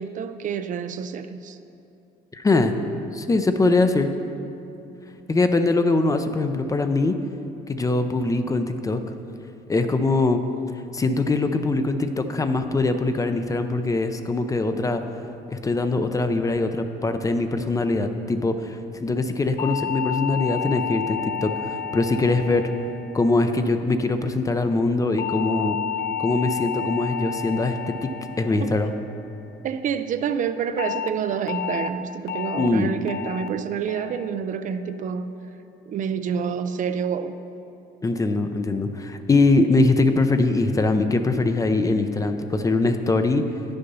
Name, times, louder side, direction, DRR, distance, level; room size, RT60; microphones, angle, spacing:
voice 1, 0.0-1.6 28.6-28.8 29.6-35.3 35.9-37.4, right 7 dB, 50° right, 10 dB, 0.4 m, -28 dB
voice 2, 2.3-2.7 3.1-4.1 5.3-7.1 7.7-9.0 9.7-10.4 10.9-15.0 15.5-22.6 23.1-25.8 26.2-28.1 28.4-28.9 32.6-32.9 38.0-43.5, left 3 dB, 20° left, 8 dB, 0.5 m, -22 dB
sound 1, 19.6-24.0 25.2-29.6 30.8-31.1 31.5-31.9 32.3-32.7 33.1-33.5 33.9-34.3 34.7-35.1, left 8 dB, 75° left, 0.5 m, -31 dB
9.7 x 6.8 x 5.5 m, 2.7 s
cardioid pair, 110°, 17 cm